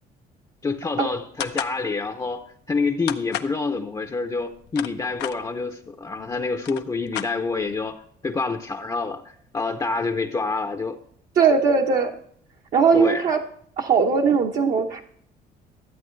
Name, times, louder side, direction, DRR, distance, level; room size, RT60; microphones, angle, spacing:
voice 1, 0.6-11.0 12.9-13.3, left 4 dB, 20° left, 6 dB, 0.7 m, -27 dB
sound 1, 1.4-1.8 3.1-3.6 4.5-5.4 6.2-6.3 6.5-7.7, left 12 dB, 85° left, 0.7 m, -32 dB
voice 2, 11.4-12.1 12.7-13.4 13.8-15.0, right 5 dB, 55° right, 0 dB, 1.0 m, -19 dB
12.5 x 8.4 x 3.2 m, 0.62 s
cardioid pair, 110°, 17 cm